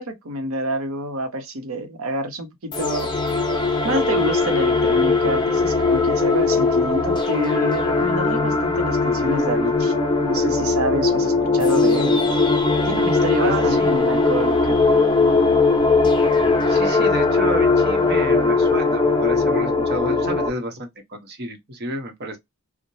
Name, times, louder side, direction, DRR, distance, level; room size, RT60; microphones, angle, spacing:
voice 1, 0.0-3.1 3.8-9.9 10.2-12.2 12.8-14.8, right 1 dB, 75° right, 0.8 m, -27 dB
sound 1, 2.7-20.5, left 3 dB, 20° left, 0.6 m, -19 dB
voice 2, 13.4-13.9 16.7-22.4, right 1 dB, 50° right, 0.9 m, -30 dB
3.0 x 2.1 x 2.6 m
head